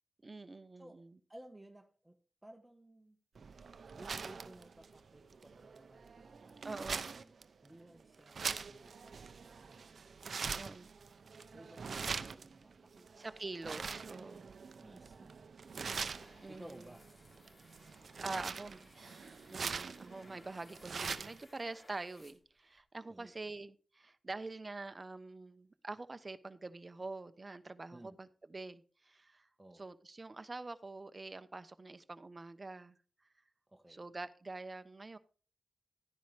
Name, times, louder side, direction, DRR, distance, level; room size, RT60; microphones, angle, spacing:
voice 1, 0.2-1.1 6.6-7.1 10.6-10.9 13.2-14.6 16.4-16.9 17.8-18.8 19.5-29.5 29.7-33.0 33.9-35.2, right 3 dB, 35° right, 0.9 m, -46 dB
voice 2, 1.3-2.2 2.4-3.2 3.9-7.3 7.6-9.9 11.5-13.3 14.8-15.4 16.5-17.1 18.2-18.8 23.1-23.6 27.9-28.2 29.6-29.8 33.7-34.1, right 1 dB, 15° right, 1.4 m, -57 dB
sound 1, 3.3-21.4, right 5 dB, 70° right, 0.7 m, -44 dB
sound 2, 15.7-22.8, left 2 dB, 50° left, 3.3 m, -63 dB
13.0 x 10.0 x 3.4 m
cardioid pair, 55°, 0 cm